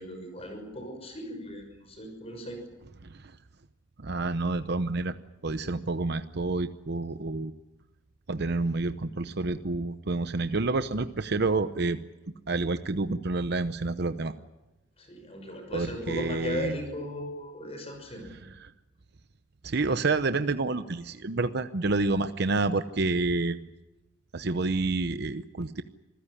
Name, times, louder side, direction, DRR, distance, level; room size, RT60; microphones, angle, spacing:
voice 1, 0.0-2.6 15.0-18.3, left 1 dB, 35° left, 4 dB, 6.1 m, -37 dB
voice 2, 4.0-5.2 5.4-7.5 8.3-12.0 12.5-14.3 15.7-16.8 18.3-18.7 19.6-23.7 24.3-25.8, right 3 dB, 60° right, 11 dB, 0.8 m, -29 dB
27.0 x 15.5 x 10.0 m, 1.1 s
head